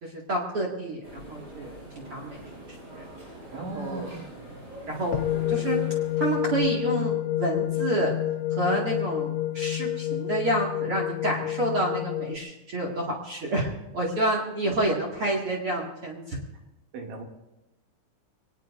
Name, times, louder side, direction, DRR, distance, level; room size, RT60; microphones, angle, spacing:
voice 1, 0.0-2.4 2.9-3.0 3.7-4.1 4.9-5.2 5.5-5.8 6.2-8.1 8.5-13.7 13.9-16.4, right 1 dB, 45° right, -2 dB, 1.9 m, -29 dB
sound 1, 1.0-6.9, right 1 dB, 20° right, 7.1 m, -44 dB
voice 2, 3.5-4.5 14.6-14.7 16.9-17.2, right 3 dB, 70° right, 0 dB, 4.6 m, -38 dB
sound 2, 5.1-12.4, left 14 dB, 80° left, 3.0 m, -28 dB
24.0 x 19.0 x 2.6 m, 0.96 s
omnidirectional pair, 5.7 m